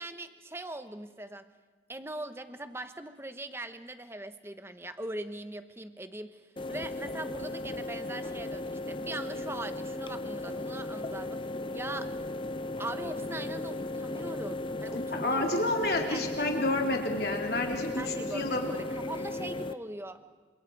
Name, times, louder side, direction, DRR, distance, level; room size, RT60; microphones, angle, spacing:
voice 1, 0.0-1.5 1.9-6.4 6.7-11.4 11.7-12.1 12.8-15.4 15.8-16.4 18.0-20.3, right 2 dB, 15° right, 10 dB, 1.0 m, -41 dB
sound 1, 6.6-19.7, left 2 dB, 30° left, 0.6 m, -36 dB
voice 2, 14.9-18.7, left 2 dB, 55° left, 2 dB, 3.3 m, -30 dB
27.0 x 26.0 x 4.7 m, 1.4 s
head